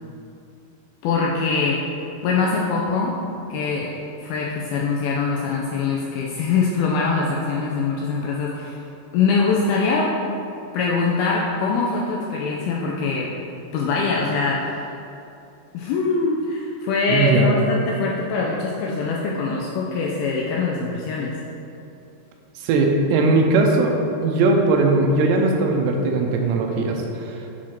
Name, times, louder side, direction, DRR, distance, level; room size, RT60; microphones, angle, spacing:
voice 1, 1.0-1.8 2.2-3.1 3.5-3.9 4.2-8.8 9.1-10.1 10.7-13.3 13.7-14.8 15.7-21.3, left 4 dB, 85° left, -3 dB, 2.2 m, -23 dB
voice 2, 17.1-17.5 22.6-23.9 24.2-27.3, right 3 dB, 85° right, 2 dB, 2.8 m, -19 dB
7.2 x 4.8 x 4.3 m, 2.8 s
omnidirectional pair, 4.9 m